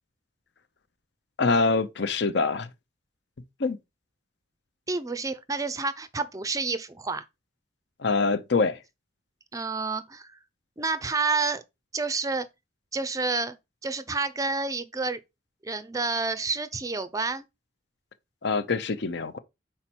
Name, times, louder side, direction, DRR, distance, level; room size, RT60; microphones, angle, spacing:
voice 1, 1.4-2.7 3.6-3.8 8.0-8.8 18.4-19.4, left 4 dB, 65° left, 0.6 m, -24 dB
voice 2, 4.9-7.3 9.5-10.4 10.8-11.6 11.9-12.5 12.9-13.6 13.8-15.2 15.6-17.4, right 3 dB, 20° right, 0.4 m, -29 dB
5.6 x 4.3 x 4.4 m
head